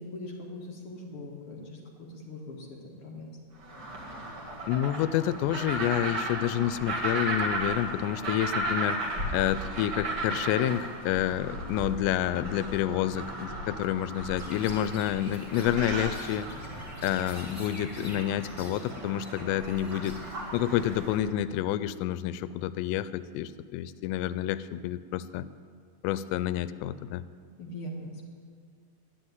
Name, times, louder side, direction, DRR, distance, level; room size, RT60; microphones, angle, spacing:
voice 1, 0.0-3.3 27.6-28.2, left 1 dB, 50° left, -2 dB, 1.8 m, -41 dB
sound 1, 3.6-21.3, right 1 dB, 70° right, 1.0 m, -35 dB
voice 2, 4.7-9.0 9.3-16.5 17.0-20.2 20.5-25.5 26.0-27.2, left 12 dB, 85° left, 15 dB, 2.7 m, -29 dB
Chirp tweet, 14.4-21.2, equal, 10° right, 1.0 m, -48 dB
12.0 x 9.9 x 9.5 m, 2.1 s
omnidirectional pair, 5.0 m